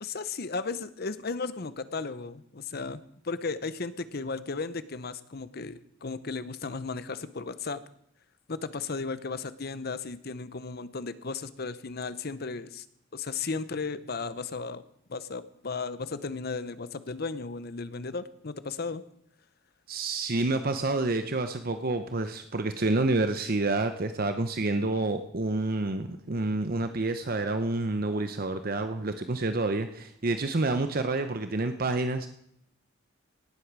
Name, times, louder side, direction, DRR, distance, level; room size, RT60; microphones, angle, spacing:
voice 1, 0.0-3.0 3.2-7.8 8.5-12.8 13.1-14.8 15.1-19.0, left 4 dB, 50° left, 14 dB, 0.8 m, -35 dB
voice 2, 19.9-32.3, right 2 dB, 45° right, 8 dB, 0.8 m, -28 dB
17.5 x 8.4 x 6.1 m, 0.72 s
head